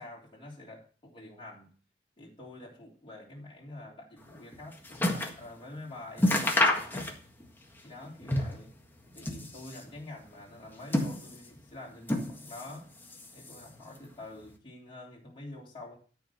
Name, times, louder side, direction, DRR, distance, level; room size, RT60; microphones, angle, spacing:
voice 1, 0.0-1.7 2.2-7.1 7.8-8.7 9.1-12.9 13.3-16.0, left 2 dB, 30° left, -3 dB, 3.4 m, -47 dB
sound 1, 4.3-5.4 5.8-5.9 6.2-7.5 7.7-8.7 9.1-9.9 10.5-11.6 12.0-12.7 13.0-13.8 14.5-14.6, left 1 dB, 10° left, 1.7 m, -30 dB
13.0 x 4.6 x 7.0 m, 0.39 s
head